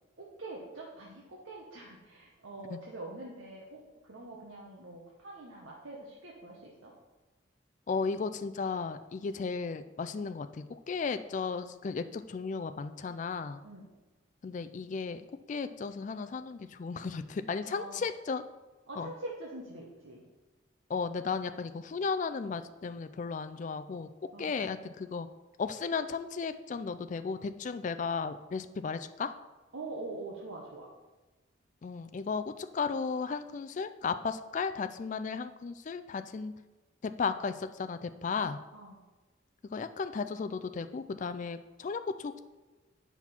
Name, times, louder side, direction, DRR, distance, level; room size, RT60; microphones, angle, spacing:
voice 1, 0.2-6.9 13.6-13.9 17.6-18.0 18.9-20.2 24.3-24.6 29.7-30.9 38.7-39.0, right 2 dB, 80° right, -3 dB, 1.1 m, -44 dB
voice 2, 7.9-13.6 14.4-18.4 19.0-19.1 20.9-24.1 24.4-25.3 25.6-29.3 31.8-36.5 37.0-38.6 39.7-42.4, left 5 dB, 40° left, 10 dB, 0.3 m, -35 dB
7.9 x 5.8 x 4.3 m, 1.2 s
head